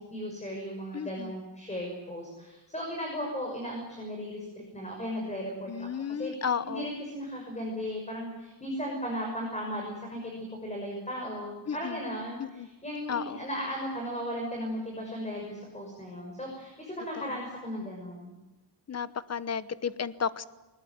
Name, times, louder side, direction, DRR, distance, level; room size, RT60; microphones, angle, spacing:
voice 1, 0.0-4.4 4.7-5.7 6.1-18.3, equal, 15° left, 0 dB, 6.2 m, -36 dB
voice 2, 0.9-1.3 5.7-6.9 11.7-12.0 12.4-12.7 13.1-13.5 18.9-20.4, left 7 dB, 35° left, 16 dB, 1.0 m, -33 dB
22.0 x 20.0 x 9.4 m, 1.1 s
wide cardioid pair, 135°, 43 cm